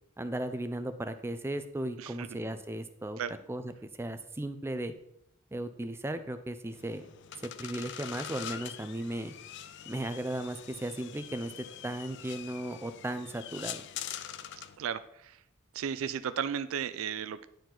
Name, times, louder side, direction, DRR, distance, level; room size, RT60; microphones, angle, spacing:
voice 1, 0.2-3.2 3.5-3.7 4.0-4.9 5.5-7.0 7.6-9.3 9.9-13.8, right 1 dB, 10° right, 10 dB, 0.4 m, -36 dB
sound 1, 6.7-14.8, left 10 dB, 55° left, 0.4 m, -44 dB
voice 2, 14.6-15.4 15.7-17.5, right 8 dB, 80° right, 13 dB, 0.4 m, -35 dB
10.5 x 4.8 x 3.8 m, 0.76 s
head